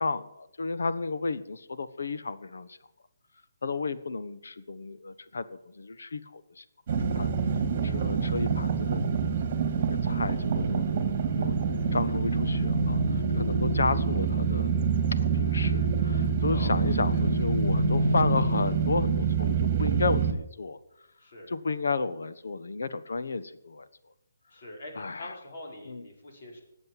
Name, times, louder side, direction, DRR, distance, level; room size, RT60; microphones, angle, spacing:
voice 1, 0.0-2.8 3.6-7.3 7.8-9.0 9.6-11.5 11.9-14.7 15.2-20.8 21.5-23.9 25.0-25.3 25.9-26.1, left 4 dB, 75° left, 12 dB, 1.2 m, -32 dB
sound 1, 6.9-20.3, right 5 dB, 30° right, 1.9 m, -26 dB
voice 2, 16.5-16.8 17.1-17.3 21.2-21.5 24.5-24.9 25.2-26.6, left 1 dB, 45° left, 0 dB, 5.0 m, -44 dB
19.5 x 7.9 x 7.6 m, 0.82 s
hypercardioid pair, 170°, 0 cm